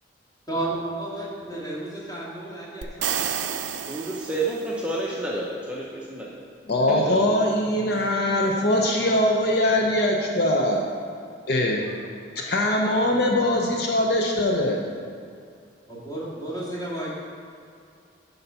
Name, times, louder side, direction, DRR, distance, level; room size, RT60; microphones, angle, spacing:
voice 1, 0.5-3.2 7.7-8.0 15.9-17.1, right 1 dB, 20° left, -7 dB, 1.9 m, -32 dB
sound 1, 2.8-4.9, right 8 dB, 75° right, 0.5 m, -30 dB
voice 2, 3.5-6.4 6.9-7.4, right 2 dB, 5° right, -5 dB, 0.6 m, -30 dB
voice 3, 6.7-10.8 11.5-12.0 12.4-14.8, left 1 dB, 55° left, 1 dB, 0.6 m, -22 dB
9.9 x 4.0 x 5.6 m, 2.3 s
head